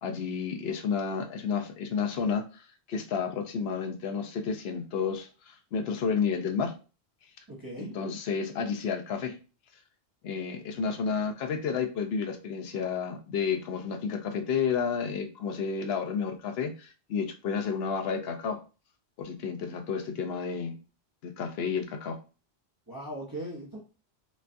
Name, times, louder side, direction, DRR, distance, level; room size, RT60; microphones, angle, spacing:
voice 1, 0.0-6.7 7.8-9.4 10.2-18.6 19.2-20.8 21.2-22.2, left 6 dB, 70° left, 5 dB, 0.9 m, -31 dB
voice 2, 7.5-7.9 22.9-23.8, right 1 dB, 20° right, -4 dB, 0.9 m, -38 dB
5.3 x 2.3 x 2.6 m, 0.34 s
omnidirectional pair, 1.1 m